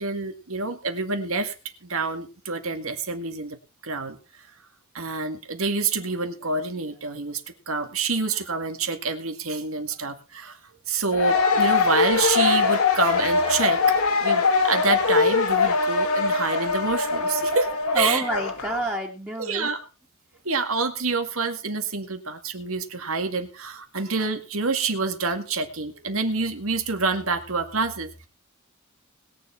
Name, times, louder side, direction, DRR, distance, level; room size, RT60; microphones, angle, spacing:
voice 1, 0.0-1.5 1.8-3.6 3.8-4.2 4.9-10.6 10.9-13.8 14.2-18.3 19.4-19.8 20.4-28.3, right 4 dB, 70° right, 7 dB, 2.1 m, -27 dB
sound 1, 11.1-18.8, left 4 dB, 80° left, 2.0 m, -22 dB
voice 2, 17.9-19.7, right 1 dB, 10° right, -2 dB, 2.4 m, -28 dB
20.5 x 7.3 x 4.4 m, 0.32 s
head